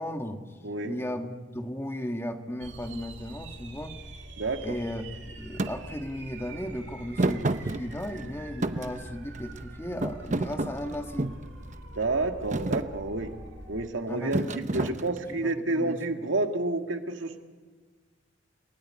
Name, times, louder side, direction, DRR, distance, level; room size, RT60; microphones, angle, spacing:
voice 1, 0.0-0.5 0.8-4.0 4.6-11.4 14.1-15.2 15.4-16.0, equal, 15° left, 5 dB, 1.6 m, -36 dB
voice 2, 0.6-1.0 4.4-4.8 11.9-13.3 13.7-17.4, right 2 dB, 85° right, 5 dB, 2.0 m, -29 dB
sound 1, 2.6-13.9, right 2 dB, 65° right, 2.6 m, -44 dB
Thump thud, 5.6-5.7 7.2-8.3 8.6-9.6 10.0-11.5 12.0-12.3 12.5-12.9 14.3-15.4, right 2 dB, 40° right, 0.9 m, -29 dB
30.0 x 17.0 x 9.7 m, 1.4 s
head